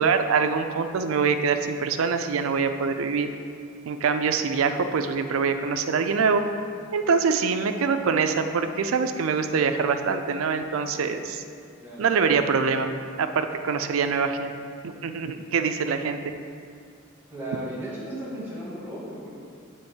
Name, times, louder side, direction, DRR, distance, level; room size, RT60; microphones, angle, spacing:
voice 1, 0.0-3.3 3.9-6.4 6.9-11.4 12.0-12.9 13.2-14.5 14.8-16.3, right 5 dB, 80° right, 8 dB, 0.4 m, -24 dB
voice 2, 17.3-19.4, right 1 dB, 10° right, -8 dB, 1.5 m, -35 dB
7.8 x 3.1 x 4.4 m, 2.2 s
head